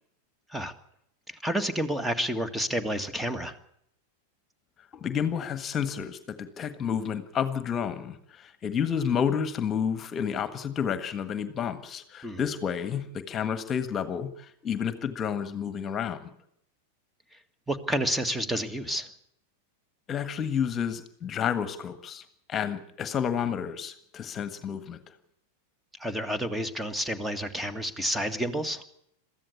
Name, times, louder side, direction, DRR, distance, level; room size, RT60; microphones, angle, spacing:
voice 1, 1.3-3.6 12.2-12.4 17.7-19.1 26.0-28.8, equal, 5° right, 11 dB, 1.9 m, -30 dB
voice 2, 4.9-16.3 20.1-25.0, left 7 dB, 30° left, 12 dB, 1.5 m, -30 dB
22.5 x 14.5 x 8.4 m, 0.74 s
figure-of-eight pair, 95°, 0 cm